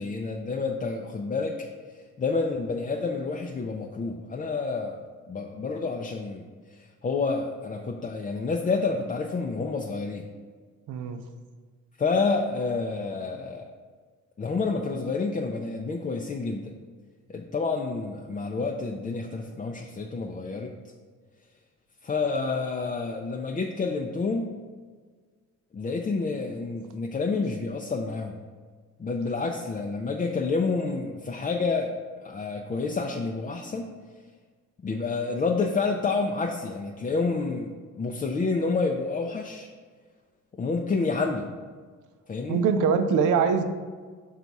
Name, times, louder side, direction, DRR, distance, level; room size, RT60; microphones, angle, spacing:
voice 1, 0.0-1.6 1.9-5.0 5.3-10.3 12.0-13.7 14.4-16.7 17.3-20.7 22.0-24.5 25.7-28.4 29.0-33.9 34.8-37.7 38.0-39.7 40.6-41.5 42.3-42.6, left 4 dB, 25° left, 1 dB, 0.5 m, -29 dB
voice 2, 10.9-11.2 42.5-43.6, right 6 dB, 85° right, 8 dB, 0.6 m, -23 dB
5.5 x 4.1 x 4.7 m, 1.5 s
cardioid pair, 90°, 30 cm